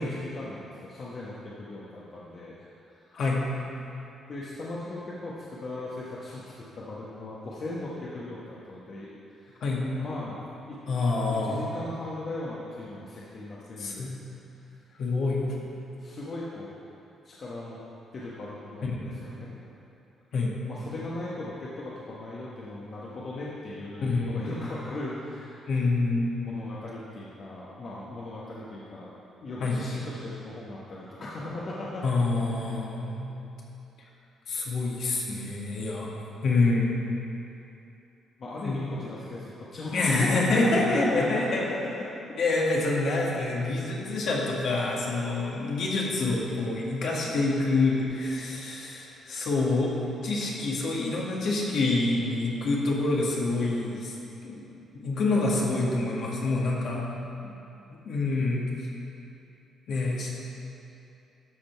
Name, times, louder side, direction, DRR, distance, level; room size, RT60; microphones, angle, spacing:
voice 1, 0.0-3.2 4.3-6.4 6.7-8.4 8.7-10.4 10.7-10.8 11.4-14.1 16.0-16.7 17.2-17.8 18.1-19.7 20.6-25.7 26.4-29.1 29.4-32.0 32.6-32.8 38.4-41.6, left 2 dB, 50° left, -7 dB, 1.3 m, -38 dB
voice 2, 3.1-3.5 9.6-9.9 10.9-11.7 13.8-14.1 15.0-15.5 18.8-19.1 20.3-20.5 24.0-24.5 25.7-26.3 29.6-29.8 32.0-33.3 34.5-36.1 36.4-36.9 38.6-38.8 39.9-41.6 42.4-54.1 54.4-54.6 54.9-57.0 58.0-58.7 59.9-60.3, left 3 dB, 65° left, -4 dB, 1.9 m, -26 dB
12.5 x 5.3 x 4.6 m, 2.8 s
cardioid pair, 90°, 0 cm